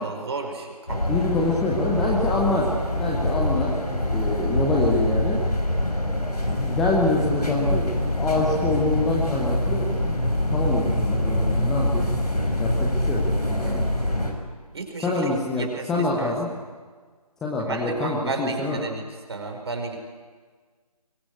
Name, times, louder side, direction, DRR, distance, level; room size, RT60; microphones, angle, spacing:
voice 1, 0.0-1.0 13.6-13.9 14.7-15.2 15.6-16.3 17.7-19.0 19.3-20.0, right 3 dB, 40° right, 4 dB, 4.9 m, -32 dB
sound 1, 0.9-14.3, left 1 dB, 80° left, 5.9 m, -24 dB
voice 2, 1.1-2.7 3.0-3.7 4.1-5.4 6.6-9.9 10.5-12.0 12.6-13.2 13.5-13.8 15.0-16.5 17.4-18.8, left 2 dB, ahead, -3 dB, 0.7 m, -25 dB
23.5 x 22.5 x 9.6 m, 1.5 s
figure-of-eight pair, 155°, 20 cm